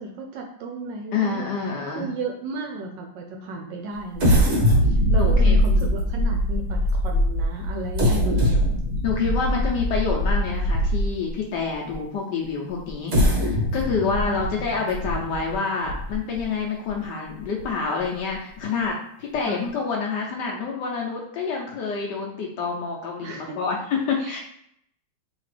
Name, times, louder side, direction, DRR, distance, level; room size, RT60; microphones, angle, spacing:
voice 1, 0.0-8.6 9.5-9.7 14.3-14.5 19.4-19.7 23.2-23.5 24.2-24.4, right 3 dB, 75° right, 2 dB, 1.1 m, -34 dB
voice 2, 1.1-2.1 5.2-6.0 9.0-24.4, left 5 dB, 70° left, -1 dB, 1.1 m, -27 dB
sound 1, 4.2-11.3 11.9-12.0 12.9-16.4 16.9-17.0 17.4-17.6, equal, 50° right, 0.8 m, -22 dB
5.0 x 2.8 x 3.2 m, 0.73 s
omnidirectional pair, 2.3 m